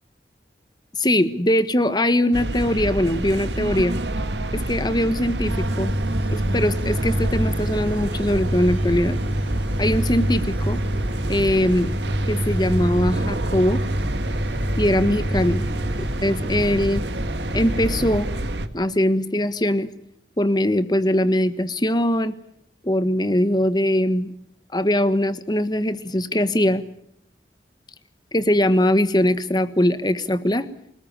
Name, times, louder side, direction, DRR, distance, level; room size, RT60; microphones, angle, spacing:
voice 1, 0.9-4.0 4.5-5.9 6.3-9.2 9.8-10.8 11.3-11.9 12.3-13.8 14.8-15.6 16.2-17.0 17.5-18.3 18.7-19.9 20.4-22.3 22.8-24.3 24.7-26.8 28.3-30.7, left 1 dB, 25° left, 12 dB, 1.4 m, -21 dB
sound 1, 2.3-18.7, right 1 dB, 80° right, 1.8 m, -28 dB
sound 2, 5.5-18.1, equal, 10° right, 4.6 m, -28 dB
27.0 x 19.5 x 7.4 m, 0.71 s
head